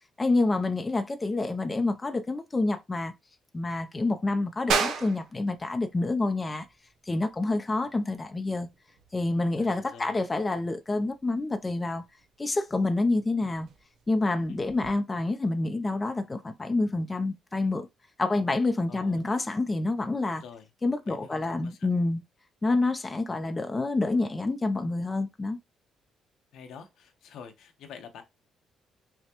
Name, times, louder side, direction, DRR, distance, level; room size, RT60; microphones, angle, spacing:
voice 1, 0.2-3.1 3.5-6.7 7.1-8.7 9.1-12.0 12.4-13.7 14.1-17.9 18.2-20.4 20.8-22.2 22.6-25.6, left 2 dB, 25° left, 0.5 m, -28 dB
sound 1, 4.7-14.9, right 5 dB, 75° right, 0.8 m, -37 dB
voice 2, 9.6-10.2 18.9-19.2 20.4-20.7 21.1-21.9 26.5-28.2, left 7 dB, 80° left, 0.9 m, -47 dB
5.6 x 2.2 x 2.9 m
cardioid pair, 90°, 0 cm